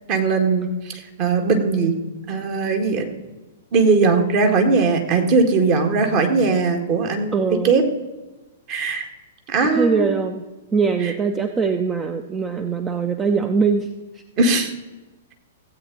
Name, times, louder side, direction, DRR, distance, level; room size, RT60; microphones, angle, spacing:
voice 1, 0.1-1.9 2.3-3.1 3.7-7.4 7.6-7.8 8.7-9.1 9.5-10.1 11.0-11.1 14.4-14.7, right 4 dB, 40° right, 4 dB, 1.9 m, -19 dB
voice 2, 7.3-7.7 9.7-10.4 10.7-13.9, right 5 dB, 15° right, 7 dB, 0.7 m, -22 dB
15.5 x 8.3 x 4.0 m, 1.2 s
figure-of-eight pair, 110°, 0 cm